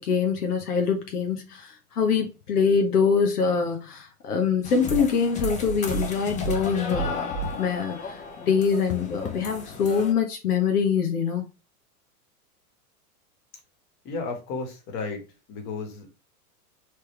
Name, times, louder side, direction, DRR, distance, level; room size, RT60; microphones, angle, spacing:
voice 1, 0.0-11.5, left 6 dB, 75° left, 1.1 m, -24 dB
sound 1, 4.6-10.1, equal, 15° left, 0.6 m, -32 dB
voice 2, 14.0-15.2 15.5-16.1, left 4 dB, 35° left, 1.7 m, -33 dB
4.4 x 3.5 x 3.3 m
hypercardioid pair, 110°, 46 cm